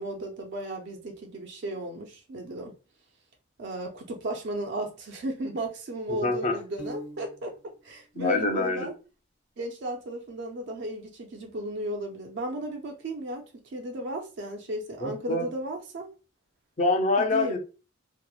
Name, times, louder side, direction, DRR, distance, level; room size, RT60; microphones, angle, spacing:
voice 1, 0.0-2.8 3.6-7.6 7.8-8.9 9.6-16.1 17.2-17.6, right 1 dB, 60° right, 0.4 m, -34 dB
voice 2, 6.2-6.6 8.2-8.9 15.0-15.5 16.8-17.6, left 2 dB, 35° left, 0.5 m, -25 dB
Piano, 6.8-7.8, right 2 dB, 90° left, 1.2 m, -42 dB
2.8 x 2.0 x 2.3 m
head